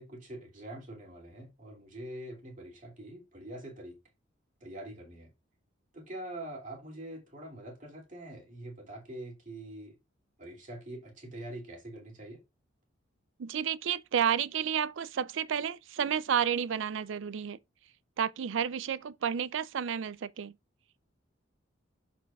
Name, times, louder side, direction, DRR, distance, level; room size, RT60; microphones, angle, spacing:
voice 1, 0.0-4.0 4.6-5.3 5.9-10.0 10.4-12.4, right 1 dB, 40° right, 2.5 m, -44 dB
voice 2, 13.4-17.6 18.2-20.5, right 8 dB, 70° right, 0.4 m, -31 dB
13.0 x 4.3 x 2.3 m
head